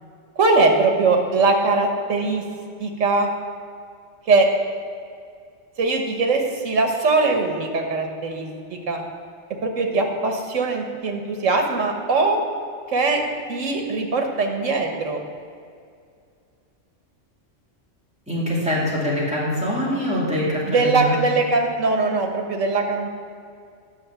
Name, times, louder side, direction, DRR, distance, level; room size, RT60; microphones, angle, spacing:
voice 1, 0.4-2.4 2.8-3.3 4.3-4.5 5.8-9.0 9.6-12.4 12.9-13.2 13.5-15.2 20.7-23.1, right 3 dB, 90° right, 3 dB, 1.5 m, -21 dB
voice 2, 18.3-21.1, equal, 5° right, -7 dB, 2.4 m, -24 dB
9.7 x 6.1 x 7.1 m, 2.3 s
omnidirectional pair, 1.3 m